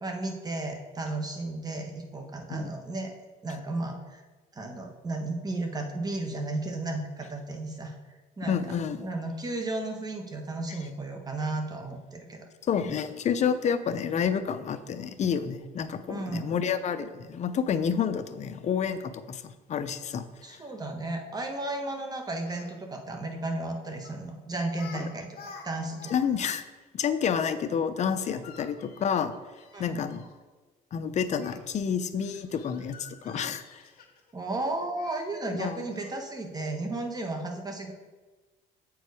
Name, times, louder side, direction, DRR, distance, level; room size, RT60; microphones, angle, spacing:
voice 1, 0.0-3.1 3.4-4.2 4.5-8.8 9.0-12.5 16.1-16.6 20.4-26.1 29.7-30.0 34.3-37.9, right 2 dB, 20° right, 4 dB, 1.1 m, -34 dB
voice 2, 8.5-9.1 12.7-19.4 19.7-20.6 24.9-25.0 26.1-26.6 26.9-29.3 29.8-30.2 30.9-33.8 35.6-35.8, left 7 dB, 45° left, 10 dB, 0.6 m, -29 dB
Speech, 22.4-22.7 24.0-24.2 24.7-25.0 25.3-26.2 26.5-26.6 28.2-30.3 31.4-31.6 32.2-34.3 35.0-35.2 35.9-36.2, left 5 dB, 65° left, 1.3 m, -49 dB
7.7 x 4.7 x 4.8 m, 1.3 s
cardioid pair, 110°, 17 cm